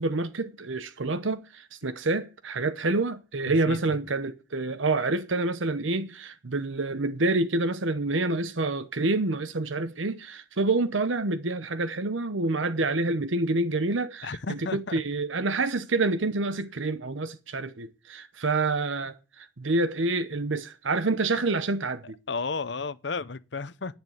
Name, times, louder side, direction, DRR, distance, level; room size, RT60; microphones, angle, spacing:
voice 1, 0.0-22.2, right 2 dB, 80° right, 1.0 m, -27 dB
voice 2, 3.5-4.0 14.2-15.0 22.3-24.0, left 4 dB, 60° left, 0.7 m, -33 dB
10.5 x 8.9 x 8.0 m
head